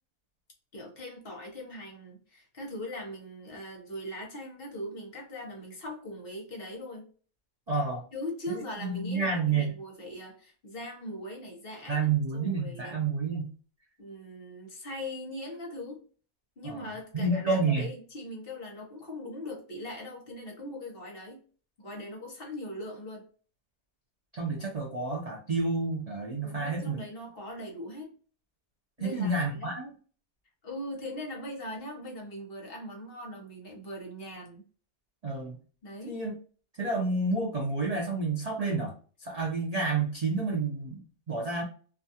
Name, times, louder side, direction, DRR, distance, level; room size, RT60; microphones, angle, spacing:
voice 1, 0.7-7.1 8.1-13.0 14.0-16.0 16.6-21.4 21.8-23.2 26.4-28.1 29.0-29.8 30.6-34.6 35.8-36.2, left 1 dB, 50° left, 0.9 m, -40 dB
voice 2, 7.7-8.0 8.5-9.7 11.9-13.5 16.6-16.8 17.1-17.9 24.3-27.0 29.0-29.9 35.2-35.6 36.1-36.3 36.8-38.9 39.2-41.0 41.3-41.6, right 3 dB, 75° right, 0.3 m, -29 dB
2.5 x 2.3 x 2.7 m
omnidirectional pair, 1.5 m